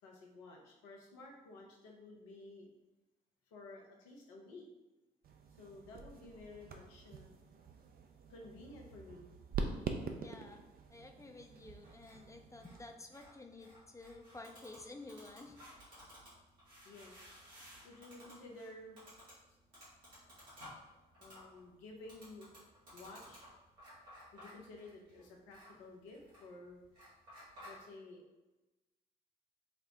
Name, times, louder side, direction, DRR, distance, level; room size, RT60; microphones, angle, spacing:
voice 1, 0.0-2.7 3.5-4.7 5.5-7.3 8.3-9.3 16.8-17.2 17.8-19.0 21.2-22.5 22.9-23.5 24.3-26.8 27.6-28.2, left 2 dB, 80° left, 0 dB, 0.6 m, -53 dB
sound 1, 5.2-13.0, right 4 dB, 45° right, 0.5 m, -45 dB
voice 2, 10.2-10.6 10.9-15.6, left 2 dB, 15° left, 4 dB, 0.4 m, -52 dB
sound 2, 11.8-27.8, equal, 85° right, 1.3 m, -57 dB
4.1 x 2.0 x 2.6 m, 1.0 s
hypercardioid pair, 40°, 21 cm